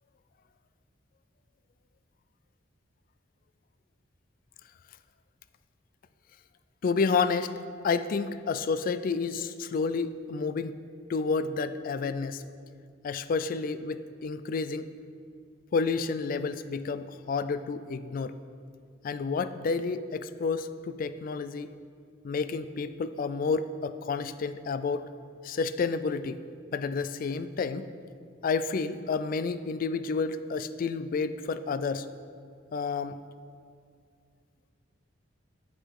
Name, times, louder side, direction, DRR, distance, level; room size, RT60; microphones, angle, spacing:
voice 1, 6.8-7.5 7.8-10.8 11.1-12.4 13.0-14.9 15.7-18.3 19.0-21.8 22.2-25.1 25.4-26.4 26.7-27.9 28.4-32.1 32.7-33.2, left 4 dB, 45° left, 13 dB, 0.3 m, -30 dB
8.5 x 8.1 x 3.7 m, 2.2 s
head